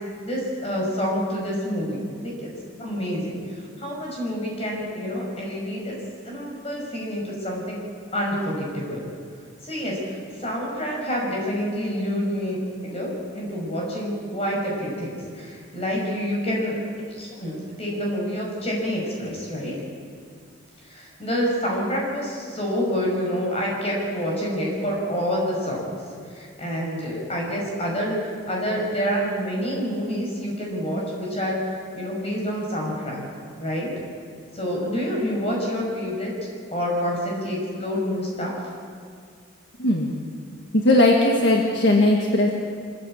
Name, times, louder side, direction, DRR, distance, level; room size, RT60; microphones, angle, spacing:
voice 1, 0.2-2.5 2.8-3.4 3.8-5.9 6.2-7.8 8.1-9.0 9.6-12.6 12.8-16.7 17.1-19.7 20.8-26.0 26.3-31.6 31.9-33.2 33.6-33.9 34.5-36.3 36.7-38.5, equal, 30° left, -2 dB, 5.9 m, -27 dB
voice 2, 40.7-42.5, left 1 dB, 60° left, 0 dB, 1.8 m, -18 dB
24.5 x 14.5 x 8.8 m, 2.1 s
head